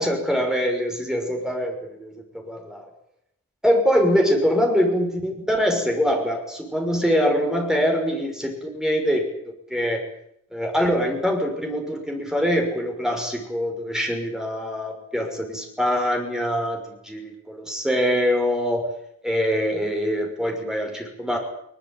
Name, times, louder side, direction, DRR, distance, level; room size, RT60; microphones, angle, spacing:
voice 1, 0.0-2.1 2.4-2.8 3.6-9.3 9.7-10.0 10.5-18.8 19.2-21.4, equal, 5° right, 2 dB, 5.9 m, -23 dB
21.5 x 20.5 x 8.9 m, 0.72 s
head